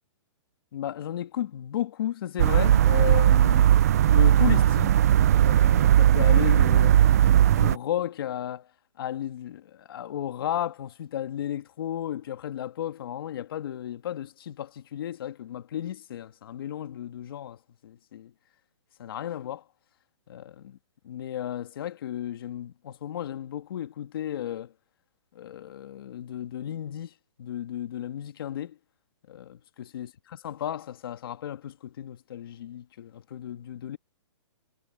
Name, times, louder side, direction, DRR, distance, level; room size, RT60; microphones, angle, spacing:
voice 1, 0.7-5.0 5.4-7.2 7.5-8.7 9.0-18.3 19.0-19.6 20.3-20.8 21.0-24.7 25.3-28.8 29.3-34.0, left 11 dB, 50° left, 2.0 m, -34 dB
sound 1, 2.4-7.8, right 11 dB, 30° right, 0.4 m, -18 dB
hypercardioid pair, 170°, 16 cm